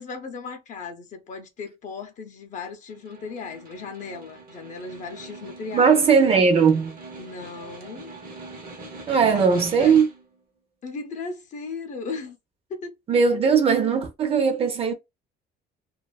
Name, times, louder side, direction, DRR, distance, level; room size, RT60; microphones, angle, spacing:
voice 1, 0.0-6.0 7.2-8.1 9.3-9.9 10.8-12.4 12.7-13.0, left 4 dB, 40° left, 0.5 m, -36 dB
Snare drum, 2.9-10.4, right 2 dB, 50° right, 0.8 m, -42 dB
voice 2, 5.7-7.0 9.1-10.1 13.1-14.9, right 5 dB, 30° right, 0.5 m, -19 dB
2.3 x 2.3 x 2.2 m
cardioid pair, 160°, 19 cm